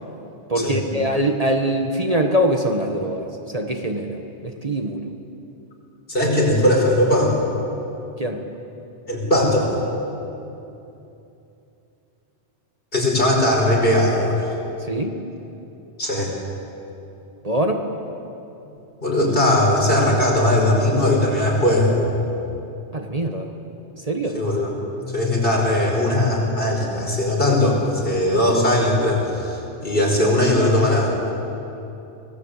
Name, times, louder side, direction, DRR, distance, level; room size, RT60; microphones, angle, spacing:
voice 1, 0.5-5.1 8.2-8.4 14.9-15.1 17.4-17.8 22.9-23.5 24.0-24.4, right 1 dB, 30° right, 3 dB, 1.5 m, -23 dB
voice 2, 6.1-7.4 9.1-9.7 12.9-14.5 16.0-16.3 19.0-21.9 24.3-24.7 25.1-31.1, left 1 dB, 50° left, -1 dB, 5.7 m, -19 dB
25.5 x 19.5 x 8.3 m, 2.8 s
omnidirectional pair, 1.2 m